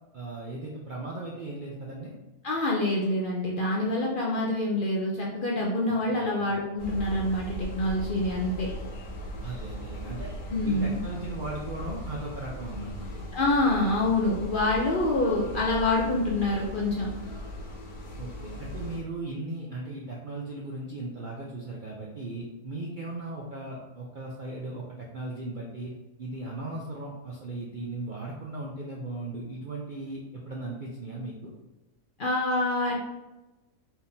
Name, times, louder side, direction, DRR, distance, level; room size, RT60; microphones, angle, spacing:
voice 1, 0.1-2.1 6.2-6.5 9.4-10.3 10.6-13.2 18.2-25.9 26.2-31.5, right 2 dB, 70° right, -3 dB, 0.4 m, -37 dB
voice 2, 2.4-8.7 10.5-11.0 13.3-17.1 32.2-33.0, left 2 dB, 65° left, -3 dB, 0.5 m, -26 dB
sound 1, 6.8-19.0, equal, 80° left, 1.4 m, -38 dB
4.5 x 3.5 x 2.7 m, 1.0 s
omnidirectional pair, 1.6 m